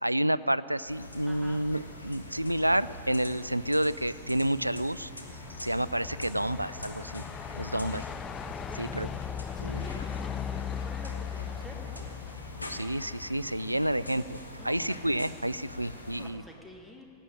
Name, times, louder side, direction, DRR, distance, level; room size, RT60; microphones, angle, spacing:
voice 1, 0.0-5.1 5.6-7.2 7.6-8.0 8.8-9.1 9.6-9.8 12.7-14.4 14.6-16.4, right 1 dB, 85° right, 18 dB, 0.3 m, -29 dB
sound 1, 0.8-16.3, left 1 dB, 85° left, 1.5 m, -44 dB
voice 2, 1.3-1.6 8.6-12.1 14.6-15.0 16.1-17.1, equal, 5° left, 0 dB, 1.9 m, -49 dB
Truck, 4.1-13.5, left 8 dB, 20° left, 0.3 m, -39 dB
17.0 x 8.7 x 9.1 m, 2.5 s
figure-of-eight pair, 90°, 0 cm